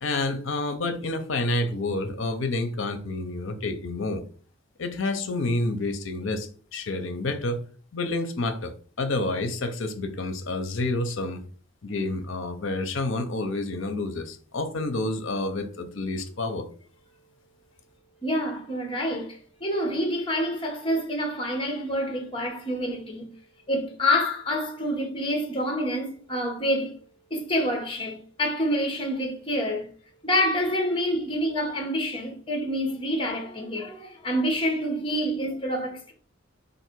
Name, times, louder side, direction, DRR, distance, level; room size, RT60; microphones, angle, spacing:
voice 1, 0.0-4.2 4.8-7.6 7.9-11.4 11.8-16.7, left 2 dB, 65° left, 0.7 m, -29 dB
voice 2, 18.2-23.3 23.7-26.9 27.3-29.9 30.2-36.1, equal, 25° left, 1.0 m, -27 dB
3.8 x 2.6 x 4.5 m
head